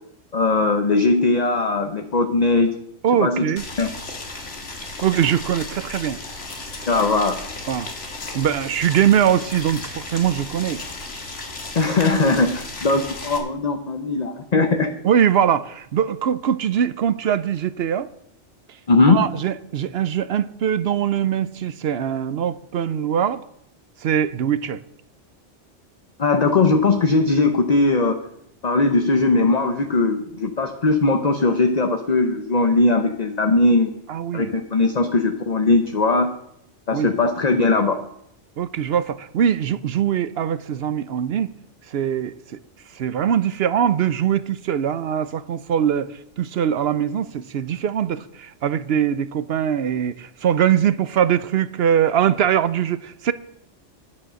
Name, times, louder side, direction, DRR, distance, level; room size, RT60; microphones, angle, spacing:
voice 1, 0.3-2.8 3.2-3.5 3.8-3.9 6.9-7.4 11.7-14.9 18.9-19.3 26.2-28.2 28.6-33.9 34.3-36.3 36.9-38.0, left 3 dB, 40° left, 0.9 m, -19 dB
voice 2, 3.0-3.6 5.0-6.2 7.7-7.9 8.3-10.8 15.0-18.1 19.1-23.4 24.0-24.8 34.1-34.5 36.9-37.2 38.6-41.5 41.9-42.6 42.9-53.3, right 9 dB, 65° right, 0.8 m, -22 dB
Boiling, 3.6-13.4, left 2 dB, 70° left, 2.2 m, -35 dB
10.5 x 9.8 x 6.2 m
omnidirectional pair, 1.3 m